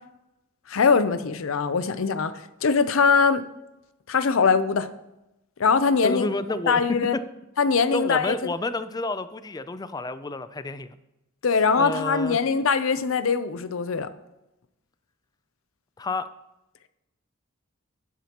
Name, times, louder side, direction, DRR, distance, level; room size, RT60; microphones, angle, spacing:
voice 1, 0.7-2.3 2.6-3.5 4.1-4.9 5.6-6.3 6.7-7.1 7.6-8.4 11.4-14.1, left 5 dB, 80° left, 13 dB, 0.6 m, -22 dB
voice 2, 6.0-6.8 7.1-7.2 7.9-10.9 11.8-12.4 16.0-16.3, left 2 dB, 20° left, 13 dB, 0.4 m, -30 dB
11.0 x 9.3 x 3.0 m, 0.93 s
head